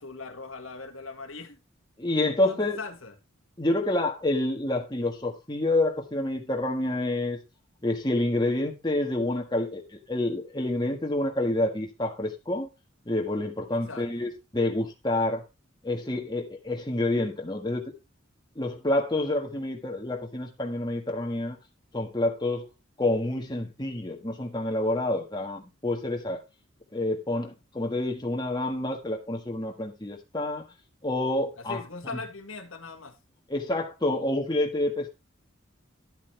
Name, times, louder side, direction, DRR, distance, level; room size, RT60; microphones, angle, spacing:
voice 1, 0.0-1.6 2.2-3.1 13.7-14.3 31.6-33.2, left 3 dB, 85° left, 1.7 m, -40 dB
voice 2, 2.0-2.8 3.6-7.4 7.8-12.7 13.0-15.4 15.8-17.9 18.5-21.6 21.9-22.7 23.0-26.4 26.9-30.6 31.0-31.8 33.5-35.1, left 1 dB, 20° left, 1.6 m, -28 dB
11.5 x 8.5 x 3.3 m
head